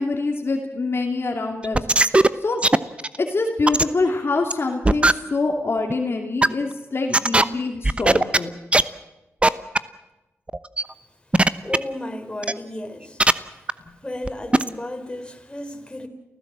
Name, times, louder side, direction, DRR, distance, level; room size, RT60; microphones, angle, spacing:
voice 1, 0.0-2.1 2.4-2.6 3.2-8.5, left 3 dB, 50° left, 2.7 m, -25 dB
sound 1, 1.6-2.3 2.6-3.2 3.7-3.8 4.5-4.6 4.8-5.1 5.9-6.0 6.4-6.5 7.1-7.4 7.8-8.4 8.7-8.8 9.4-9.5 9.7-9.8 10.5-10.8 11.3-11.8 12.4-12.5 13.2-13.3 13.7-13.8 14.2-14.3 14.5-14.7, right 2 dB, 20° right, 0.9 m, -16 dB
voice 2, 11.6-13.2 14.0-16.1, left 1 dB, 20° left, 3.9 m, -33 dB
29.0 x 15.0 x 7.6 m
cardioid pair, 50°, 5 cm